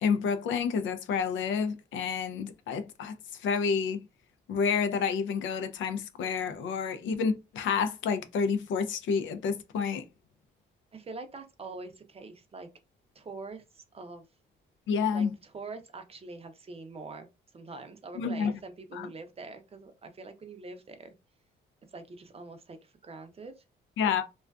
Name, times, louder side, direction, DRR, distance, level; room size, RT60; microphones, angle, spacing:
voice 1, 0.0-3.1 3.4-4.0 4.5-10.0 14.9-15.3 18.2-18.5 18.9-19.1 24.0-24.2, left 6 dB, 75° left, 0.4 m, -29 dB
voice 2, 10.9-12.7 13.1-14.2 15.1-17.3 17.5-21.1 21.9-23.5, right 3 dB, 30° right, 0.6 m, -44 dB
2.4 x 2.3 x 2.2 m
cardioid pair, 90°, 20 cm